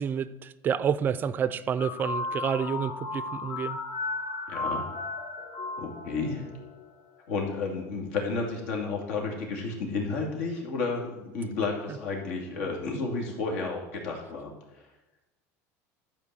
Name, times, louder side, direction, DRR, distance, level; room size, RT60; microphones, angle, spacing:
voice 1, 0.0-3.8, right 8 dB, 25° right, 0.4 m, -29 dB
sound 1, 1.8-6.8, left 3 dB, 65° left, 1.7 m, -35 dB
voice 2, 4.5-4.9 5.8-6.5 7.3-14.5, left 4 dB, 80° left, 2.8 m, -32 dB
12.0 x 4.6 x 7.7 m
cardioid pair, 160°, 8 cm